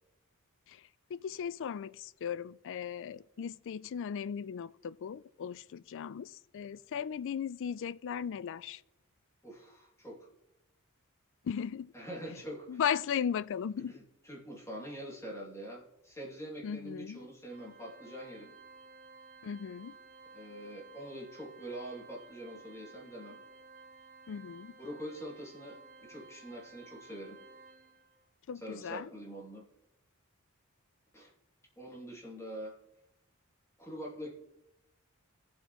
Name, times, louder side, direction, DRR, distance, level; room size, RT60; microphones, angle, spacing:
voice 1, 0.7-8.8 11.4-11.9 12.7-14.0 16.6-17.2 19.4-20.0 24.3-24.7 28.5-29.1, left 8 dB, 60° left, 0.3 m, -37 dB
voice 2, 9.4-10.3 11.9-12.8 13.9-18.5 20.3-23.4 24.8-27.4 28.6-29.6 31.1-31.3 31.8-32.7 33.8-34.3, equal, 15° left, 2.6 m, -44 dB
Organ, 17.5-28.2, right 4 dB, 40° right, 1.2 m, -55 dB
20.0 x 7.9 x 3.0 m
head